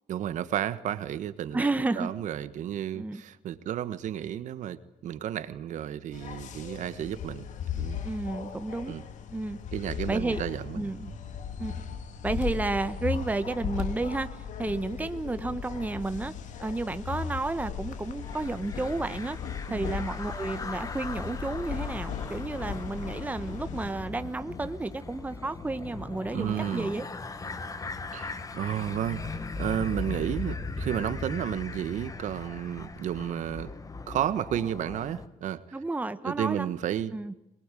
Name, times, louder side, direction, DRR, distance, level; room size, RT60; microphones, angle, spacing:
voice 1, 0.1-1.7 2.0-7.4 7.8-8.0 8.9-9.0 9.7-10.9 19.7-19.9 26.3-26.9 28.1-33.7 34.1-35.6 36.2-37.1, right 10 dB, 75° right, 13 dB, 1.5 m, -32 dB
voice 2, 1.5-2.1 2.9-3.2 8.0-8.9 9.3-9.6 10.1-10.4 10.7-11.1 11.6-11.8 12.2-14.3 14.6-16.3 16.6-19.4 19.7-27.1 35.7-36.7 37.1-37.3, right 2 dB, 10° right, 11 dB, 1.2 m, -31 dB
sound 1, 6.1-23.9, left 7 dB, 75° left, 2.7 m, -37 dB
sound 2, 18.2-35.3, left 3 dB, 25° left, 1.7 m, -39 dB
24.0 x 21.5 x 9.2 m, 0.87 s
cardioid pair, 130°, 13 cm